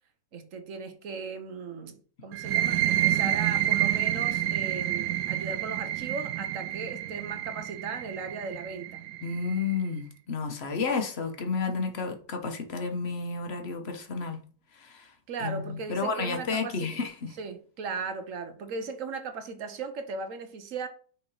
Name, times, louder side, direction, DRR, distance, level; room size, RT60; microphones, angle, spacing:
voice 1, 0.3-9.0 15.3-16.9 17.4-20.9, right 4 dB, 55° right, 1.1 m, -37 dB
sound 1, 2.3-9.8, right 12 dB, 75° right, 1.1 m, -29 dB
voice 2, 9.2-14.4 14.7-15.1 15.4-17.3, left 4 dB, 40° left, 1.1 m, -31 dB
6.1 x 3.6 x 4.8 m
omnidirectional pair, 1.9 m